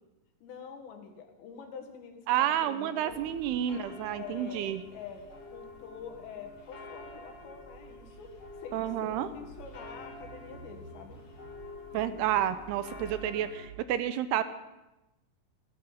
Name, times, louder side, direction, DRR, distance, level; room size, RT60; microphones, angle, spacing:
voice 1, 0.4-3.3 4.2-8.3 8.6-11.2, left 6 dB, 85° left, 4 dB, 4.2 m, -46 dB
voice 2, 2.3-4.8 8.7-9.3 11.9-14.4, right 11 dB, 80° right, 12 dB, 2.6 m, -30 dB
sound 1, 3.0-13.7, left 1 dB, 40° left, 2.8 m, -47 dB
15.0 x 14.5 x 5.8 m, 1.0 s
omnidirectional pair, 4.9 m